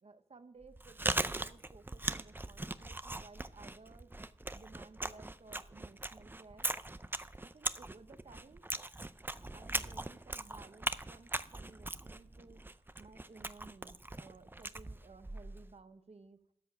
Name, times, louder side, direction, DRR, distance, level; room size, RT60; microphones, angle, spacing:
voice 1, 0.0-4.1 4.5-6.7 7.4-8.7 9.4-16.4, right 3 dB, 65° right, 8 dB, 0.9 m, -57 dB
Chewing mastication, 0.6-15.7, right 2 dB, 20° right, 0.5 m, -40 dB
13.0 x 7.0 x 6.0 m, 0.74 s
wide cardioid pair, 85°, 11 cm